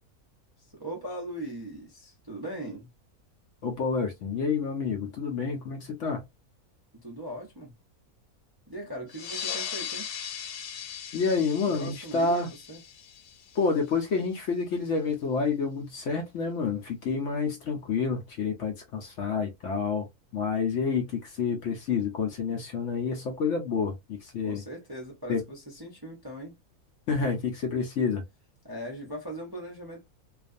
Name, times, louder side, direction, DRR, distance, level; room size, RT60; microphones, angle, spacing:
voice 1, 0.6-2.9 7.0-7.7 8.7-10.1 11.6-12.8 24.4-26.6 28.6-30.1, right 1 dB, 25° right, 0.5 m, -39 dB
voice 2, 3.6-6.2 11.1-12.5 13.5-20.1 20.3-24.6 25.3-25.4 27.1-28.2, left 5 dB, 65° left, 0.8 m, -28 dB
sound 1, 9.1-14.2, left 8 dB, 90° left, 1.1 m, -38 dB
2.5 x 2.3 x 2.4 m
omnidirectional pair, 1.6 m